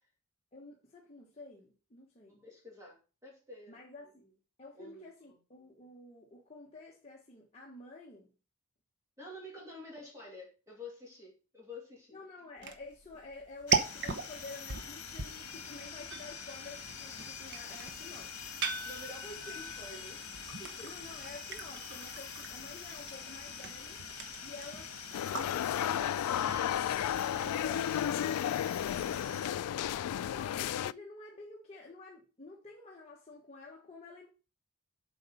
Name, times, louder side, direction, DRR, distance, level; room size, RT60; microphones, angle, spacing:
voice 1, 0.5-2.4 3.7-4.3 4.6-8.3 12.1-18.5 20.8-24.0 24.4-25.0 25.3-28.6 30.1-34.3, left 3 dB, 30° left, 1.3 m, -50 dB
voice 2, 2.4-3.8 4.2-4.3 4.7-5.4 9.2-12.2 18.8-20.9, left 1 dB, 15° right, 2.5 m, -49 dB
sound 1, 12.6-27.7, right 5 dB, 50° right, 0.9 m, -40 dB
sound 2, 13.7-29.5, left 6 dB, 65° left, 1.6 m, -45 dB
sound 3, 25.1-30.9, left 10 dB, 85° left, 0.3 m, -33 dB
7.6 x 4.6 x 5.5 m
head